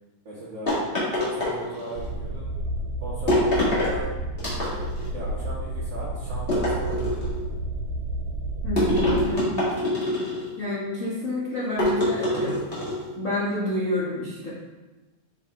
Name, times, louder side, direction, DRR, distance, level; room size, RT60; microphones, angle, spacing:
voice 1, 0.2-0.8 1.1-2.5 3.0-4.1 4.6-4.8 5.1-7.3, right 1 dB, 45° right, -10 dB, 1.8 m, -37 dB
sound 1, 0.7-2.0 3.3-3.9 4.4-5.1 6.5-7.4 8.8-10.5 11.8-13.1, left 1 dB, 25° left, 1.5 m, -25 dB
sound 2, 2.0-9.3, right 1 dB, 85° right, 2.0 m, -31 dB
voice 2, 8.6-9.6 10.6-12.6 13.2-14.5, left 1 dB, 70° left, -9 dB, 0.7 m, -29 dB
5.5 x 5.0 x 3.6 m, 1.2 s
omnidirectional pair, 3.4 m